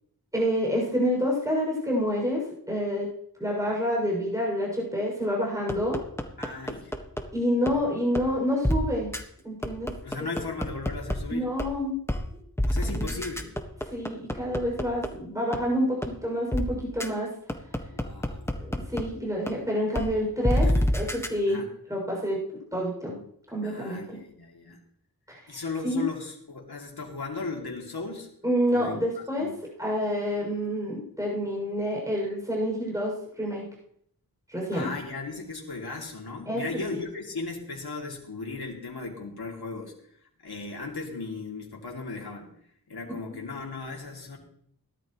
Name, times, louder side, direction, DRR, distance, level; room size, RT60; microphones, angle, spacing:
voice 1, 0.3-3.1 3.4-6.0 7.3-9.1 9.4-9.9 10.2-10.3 11.3-12.0 12.9-13.1 13.9-17.3 18.6-21.6 21.9-22.4 22.7-23.2 23.5-24.2 25.3-26.0 28.4-29.5 29.8-33.7 34.5-34.9 36.5-36.8 43.3-43.4, equal, 10° right, -2 dB, 6.5 m, -28 dB
sound 1, 5.7-7.2 7.7-7.8 8.1-8.2 8.6-8.8 9.1-9.2 9.6-11.1 11.6-11.7 12.1-12.2 12.6-15.1 15.5-15.6 16.0-16.1 16.5-16.6 17.0-17.1 17.5-19.0 19.5-19.6 19.9-20.0 20.4-21.3, left 1 dB, 5° left, 1.5 m, -26 dB
voice 2, 6.4-6.9 7.7-7.8 10.0-11.5 12.7-13.5 17.9-18.5 20.6-20.9 21.5-21.7 23.6-24.8 25.5-28.3 28.7-29.0 29.4-29.5 34.7-39.9 40.4-42.5 42.9-44.4, left 3 dB, 90° left, 0 dB, 2.8 m, -36 dB
18.0 x 12.5 x 3.2 m, 0.67 s
wide cardioid pair, 65°, 37 cm